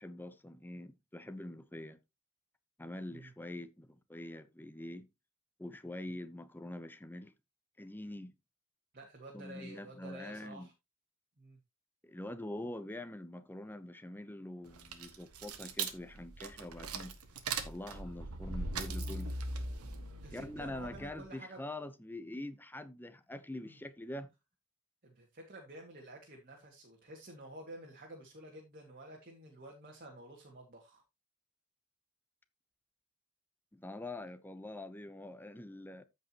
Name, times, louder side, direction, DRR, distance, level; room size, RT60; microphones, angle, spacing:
voice 1, 0.0-2.0 2.8-5.1 5.6-7.3 7.8-8.3 9.3-10.7 12.0-17.2 17.6-19.3 20.3-24.3 33.7-36.0, left 1 dB, 10° left, 0.8 m, -44 dB
voice 2, 8.9-10.7 11.4-11.6 20.2-21.6 23.6-23.8 25.0-31.0, right 1 dB, 40° right, 2.1 m, -51 dB
sound 1, 14.7-21.2, right 3 dB, 85° right, 1.6 m, -40 dB
14.5 x 5.3 x 2.9 m
head